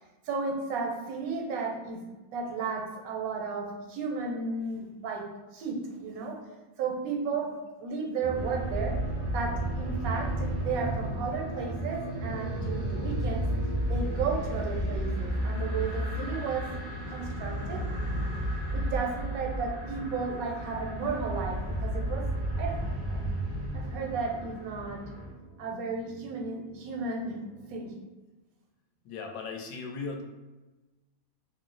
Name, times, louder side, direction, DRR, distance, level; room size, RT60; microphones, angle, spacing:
voice 1, 0.2-5.3 5.5-6.4 6.8-9.0 9.3-13.5 13.9-16.7 17.1-17.9 18.7-22.3 22.6-23.2 23.7-25.0 25.6-27.4 27.7-27.9, right 4 dB, 85° right, 1 dB, 1.1 m, -34 dB
sound 1, 8.2-27.9, right 3 dB, 55° right, 0.5 m, -42 dB
sound 2, 8.3-25.3, equal, 15° left, 0.5 m, -33 dB
Wind instrument woodwind instrument, 12.3-18.4, right 4 dB, 70° left, 0.5 m, -50 dB
voice 2, 29.0-30.2, left 4 dB, 85° left, 2 dB, 1.0 m, -37 dB
2.6 x 2.0 x 3.8 m, 1.2 s
omnidirectional pair, 1.5 m